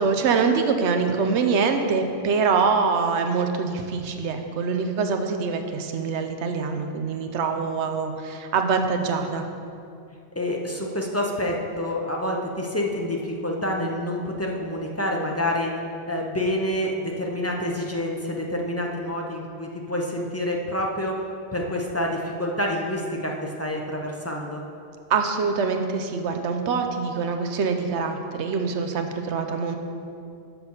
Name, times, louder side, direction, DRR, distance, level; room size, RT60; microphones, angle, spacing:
voice 1, 0.0-9.5 25.1-29.8, right 5 dB, 85° right, 5 dB, 1.0 m, -24 dB
voice 2, 10.4-15.7 16.1-21.2 21.5-24.6, left 1 dB, 15° left, 0 dB, 0.6 m, -27 dB
6.9 x 6.1 x 5.5 m, 2.5 s
omnidirectional pair, 1.1 m